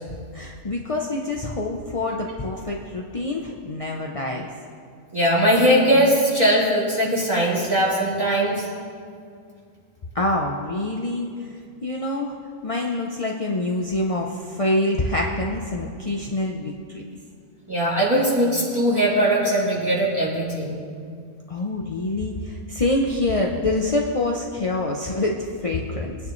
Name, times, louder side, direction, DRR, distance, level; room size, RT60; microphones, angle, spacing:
voice 1, 0.1-4.5 10.1-11.6 11.8-12.4 12.6-17.0 21.5-26.2, left 2 dB, 35° left, -1 dB, 0.5 m, -26 dB
voice 2, 5.1-8.6 17.7-20.8, equal, 15° right, -9 dB, 3.9 m, -20 dB
23.0 x 9.6 x 3.2 m, 2.2 s
omnidirectional pair, 1.7 m